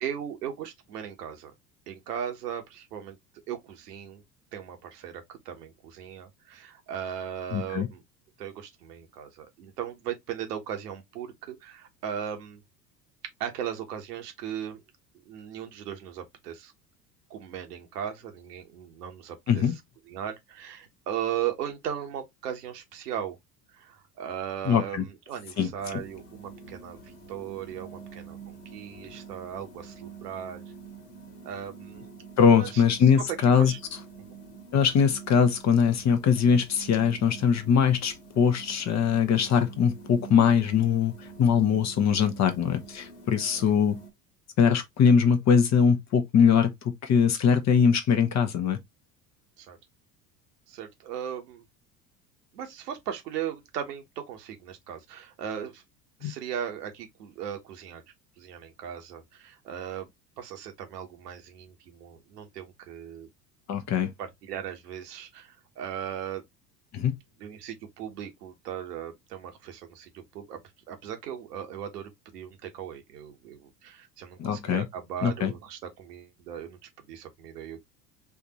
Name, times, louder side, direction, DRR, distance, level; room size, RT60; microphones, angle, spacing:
voice 1, 0.0-1.5 1.9-3.2 3.5-4.2 4.5-8.0 8.4-12.6 13.4-14.8 15.2-16.7 17.3-19.6 20.1-23.4 23.7-30.6 31.4-32.1 32.6-32.8 33.6-33.8 34.3-34.4 43.6-43.7 49.6-49.8 50.7-51.6 52.5-55.8 56.2-58.0 58.4-60.1 60.4-63.3 64.2-66.4 67.4-70.6 70.9-76.8 77.1-77.8, right 9 dB, 70° right, 1.2 m, -37 dB
voice 2, 7.5-7.9 19.5-19.7 24.6-25.1 25.6-26.0 32.4-33.7 34.7-41.1 41.4-44.0 44.6-48.8 56.2-56.3 63.7-64.1 66.9-67.2 74.4-74.9 75.2-75.5, left 7 dB, 35° left, 0.9 m, -22 dB
sound 1, 25.8-44.1, right 5 dB, 70° left, 1.5 m, -47 dB
4.5 x 2.6 x 2.9 m
figure-of-eight pair, 70°, 50 cm